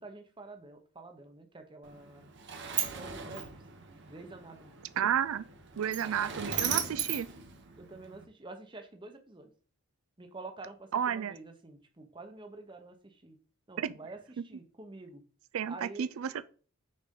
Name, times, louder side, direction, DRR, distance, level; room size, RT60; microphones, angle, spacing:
voice 1, 0.0-2.3 3.0-3.6 4.1-4.7 7.8-9.5 10.2-13.4 13.7-15.2 15.7-16.4, right 3 dB, 20° right, 0.9 m, -48 dB
Sliding door, 1.8-8.2, right 8 dB, 55° right, 1.0 m, -37 dB
voice 2, 5.0-5.5 5.8-7.3 10.9-11.3 13.8-13.9 15.5-16.5, right 8 dB, 70° right, 0.4 m, -31 dB
6.4 x 5.0 x 3.7 m
head